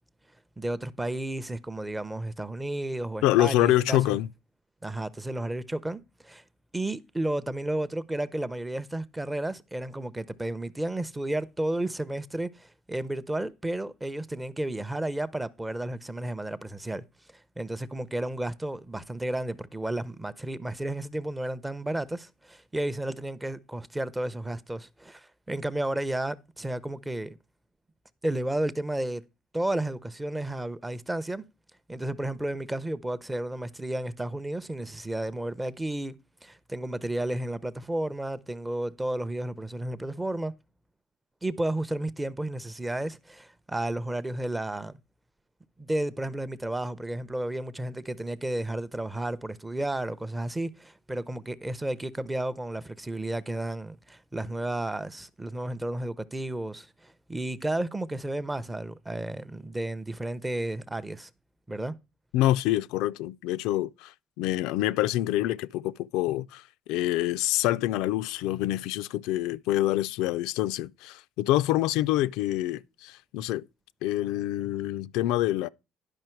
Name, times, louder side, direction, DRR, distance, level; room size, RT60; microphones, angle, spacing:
voice 1, 0.6-4.2 4.8-6.4 6.7-17.0 17.3-27.4 28.2-29.2 29.5-31.4 31.9-36.2 36.4-40.5 41.4-45.0 45.8-61.3 61.7-62.0, right 1 dB, 10° right, 0.6 m, -32 dB
voice 2, 3.2-4.3 62.3-66.6 66.9-73.6 74.0-75.7, left 15 dB, 80° left, 0.4 m, -26 dB
11.0 x 5.4 x 4.5 m
cardioid pair, 130°, 0 cm